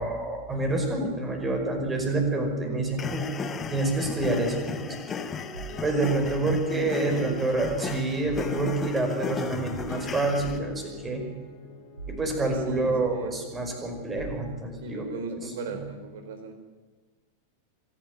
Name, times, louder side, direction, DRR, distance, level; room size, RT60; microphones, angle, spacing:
voice 1, 0.0-3.4 3.7-5.0 5.8-11.3 12.1-15.4 15.7-15.8, right 2 dB, 15° right, 3 dB, 5.2 m, -28 dB
sound 1, 3.0-10.6, left 5 dB, 20° left, 1.4 m, -36 dB
sound 2, 5.1-14.7, left 3 dB, 40° left, 3.4 m, -46 dB
sound 3, 5.5-5.9 6.2-6.6 7.6-7.9 8.2-8.7 9.7-10.8 12.0-13.2 14.1-14.4, right 3 dB, 80° right, 4.2 m, -42 dB
voice 2, 6.7-7.3 12.4-13.3 14.8-16.5, right 3 dB, 55° right, 7 dB, 4.1 m, -37 dB
25.0 x 11.5 x 9.4 m, 1.3 s
figure-of-eight pair, 90°, 0 cm